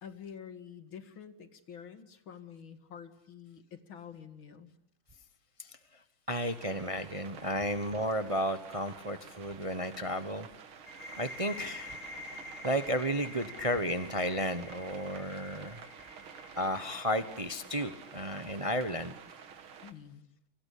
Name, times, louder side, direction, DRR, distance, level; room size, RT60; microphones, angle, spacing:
voice 1, 0.0-4.7 19.8-20.3, left 7 dB, 75° left, 10 dB, 2.8 m, -48 dB
voice 2, 6.3-10.5 11.2-11.9 12.6-15.8 16.6-19.1, equal, 25° right, 11 dB, 0.8 m, -33 dB
sound 1, 6.3-19.9, right 7 dB, 85° right, 2.6 m, -50 dB
sound 2, 10.9-18.4, left 1 dB, 35° left, 4.9 m, -47 dB
29.5 x 23.5 x 8.5 m, 0.71 s
omnidirectional pair, 2.2 m